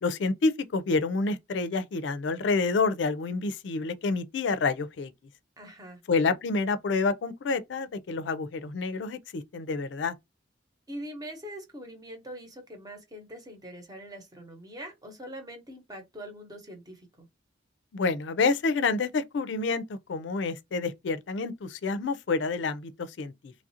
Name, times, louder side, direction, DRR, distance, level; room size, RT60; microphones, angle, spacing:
voice 1, 0.0-5.1 6.1-10.1 17.9-23.5, left 4 dB, 70° left, 0.4 m, -28 dB
voice 2, 5.6-6.0 10.9-17.3, equal, 20° right, 0.9 m, -43 dB
3.1 x 2.4 x 2.7 m
head